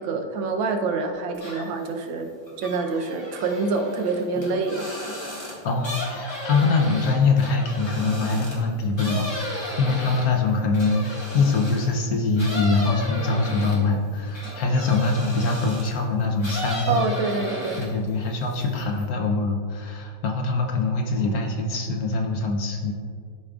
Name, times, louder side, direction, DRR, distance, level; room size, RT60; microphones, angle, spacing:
voice 1, 0.0-2.3 2.6-4.9 16.9-17.8, right 4 dB, 90° right, 4 dB, 1.5 m, -26 dB
sound 1, 1.3-1.9 2.2-11.9 12.4-16.0 16.4-18.1 18.4-19.0, equal, 15° left, 1.5 m, -35 dB
voice 2, 5.6-17.0 17.8-22.9, left 3 dB, 65° left, 2 dB, 1.0 m, -23 dB
12.0 x 5.0 x 2.3 m, 2.2 s
omnidirectional pair, 2.1 m